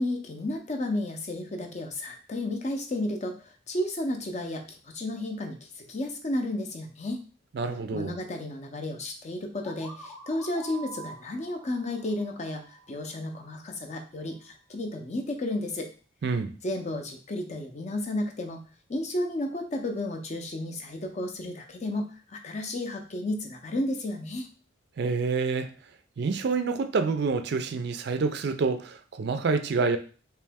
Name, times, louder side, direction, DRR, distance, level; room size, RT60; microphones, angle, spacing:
voice 1, 0.0-7.2 7.9-15.9 16.6-18.6 18.9-24.5, left 1 dB, 35° left, 4 dB, 0.5 m, -32 dB
voice 2, 7.5-8.1 16.2-16.5 25.0-25.7 26.2-30.0, right 4 dB, 55° right, 9 dB, 0.4 m, -27 dB
sound 1, 9.6-13.4, right 3 dB, ahead, 0.7 m, -46 dB
3.1 x 2.8 x 3.4 m, 0.37 s
head